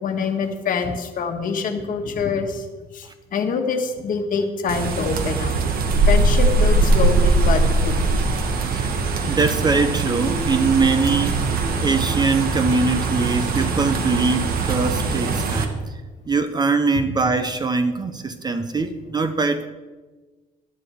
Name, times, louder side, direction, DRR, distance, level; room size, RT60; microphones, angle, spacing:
voice 1, 0.0-2.7 2.9-5.5 6.1-8.3 13.2-13.4 16.9-17.1 18.8-18.9, left 5 dB, 55° left, 4 dB, 1.5 m, -25 dB
sound 1, 4.7-15.6, right 3 dB, 60° right, 1.4 m, -21 dB
voice 2, 9.2-11.4 11.8-15.8 16.3-19.7, right 4 dB, 25° right, 10 dB, 0.7 m, -22 dB
12.0 x 11.5 x 3.6 m, 1.3 s
cardioid pair, 110°, 17 cm